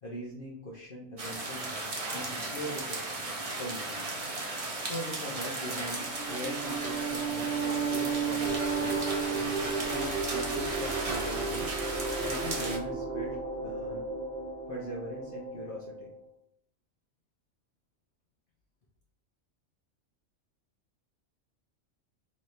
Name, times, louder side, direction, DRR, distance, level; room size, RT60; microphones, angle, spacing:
voice 1, 0.0-1.7 2.1-4.1 4.8-11.7 12.2-14.1 14.7-16.1, equal, 50° left, -3 dB, 0.8 m, -41 dB
sound 1, 1.2-12.8, right 2 dB, 35° right, 0.6 m, -36 dB
sound 2, 6.0-16.2, right 4 dB, 50° right, 1.0 m, -34 dB
4.1 x 2.7 x 3.1 m, 0.70 s
omnidirectional pair, 1.3 m